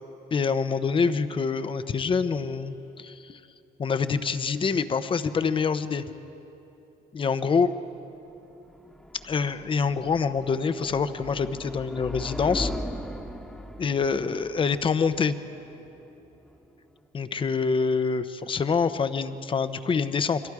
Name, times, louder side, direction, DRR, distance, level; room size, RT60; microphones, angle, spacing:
voice 1, 0.3-3.4 3.8-6.0 7.1-7.7 9.2-12.7 13.8-15.4 17.1-20.4, left 5 dB, 30° left, 11 dB, 0.9 m, -26 dB
sound 1, 8.0-17.0, left 1 dB, 5° left, 1.3 m, -39 dB
29.5 x 22.5 x 4.9 m, 2.9 s
cardioid pair, 110°, 17 cm